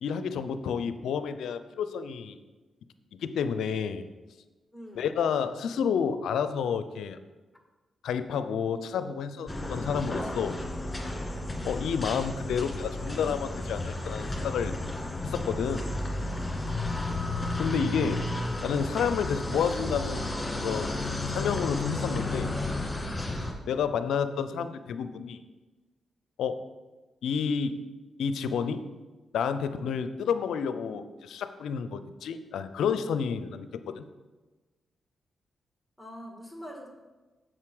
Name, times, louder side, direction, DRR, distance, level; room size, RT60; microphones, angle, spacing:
voice 1, 0.0-2.4 3.2-4.0 5.0-7.2 8.0-10.6 11.6-14.7 15.2-16.0 17.1-17.2 17.6-18.2 18.6-20.3 20.6-21.0 21.3-22.5 23.7-25.4 26.4-26.6 27.2-27.8 28.2-28.8 29.3-34.0, left 7 dB, 80° left, 11 dB, 0.5 m, -30 dB
voice 2, 4.7-5.2 24.5-24.8 36.0-36.9, equal, ahead, 0 dB, 2.2 m, -45 dB
sound 1, 9.5-23.5, left 2 dB, 25° left, 2.2 m, -32 dB
7.5 x 6.4 x 4.9 m, 1.2 s
supercardioid pair, 45°, 0 cm